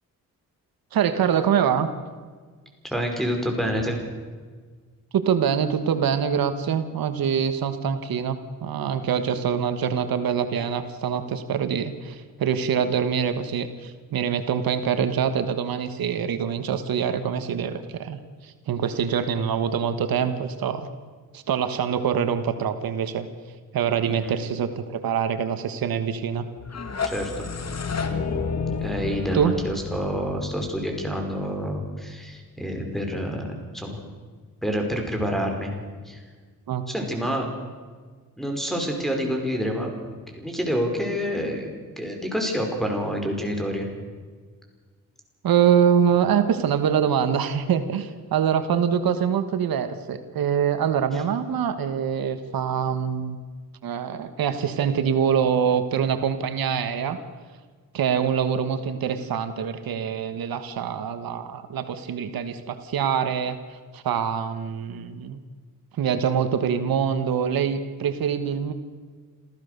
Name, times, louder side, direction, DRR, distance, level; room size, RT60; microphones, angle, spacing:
voice 1, 0.9-1.9 5.1-20.9 21.3-23.3 23.7-26.5 29.3-29.5 36.7-36.9 45.4-53.4 53.8-57.2 57.9-65.4 65.9-68.7, right 8 dB, 85° right, 9 dB, 1.5 m, -24 dB
voice 2, 2.9-4.0 24.0-24.3 27.1-27.5 28.8-34.0 34.6-35.7 36.1-36.2 36.9-37.5 38.4-39.9 40.3-43.9, equal, ahead, 3 dB, 5.3 m, -28 dB
sound 1, 26.6-31.5, left 5 dB, 45° left, 2.2 m, -30 dB
27.5 x 15.0 x 6.8 m, 1.6 s
cardioid pair, 95°, 35 cm